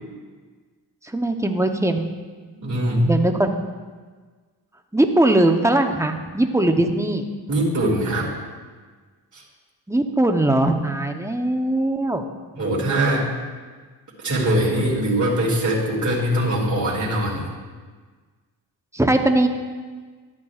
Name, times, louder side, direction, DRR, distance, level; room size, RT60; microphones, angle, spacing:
voice 1, 1.1-2.1 3.1-3.5 4.9-7.2 9.9-12.2 18.9-19.5, right 1 dB, 5° right, 5 dB, 0.8 m, -20 dB
voice 2, 2.6-3.1 7.5-8.3 9.3-9.4 12.5-13.3 14.2-17.5, right 1 dB, 40° right, -5 dB, 2.5 m, -22 dB
12.5 x 8.6 x 2.4 m, 1.5 s
cardioid pair, 60°, 46 cm